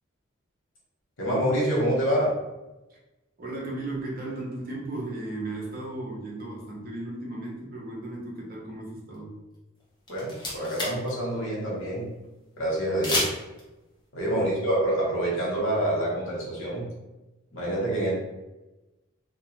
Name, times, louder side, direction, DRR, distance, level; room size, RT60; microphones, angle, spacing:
voice 1, 1.2-2.3 10.1-12.1 12.6-13.3 14.1-16.8 17.5-18.1, right 1 dB, 80° left, -5 dB, 1.1 m, -26 dB
voice 2, 3.4-9.4 14.3-14.6, right 2 dB, 45° right, -3 dB, 0.7 m, -35 dB
sound 1, 9.8-9.9 10.1-11.1 11.4-11.5 13.0-13.6, left 1 dB, 20° left, 0.5 m, -29 dB
2.4 x 2.2 x 3.0 m, 1.0 s
head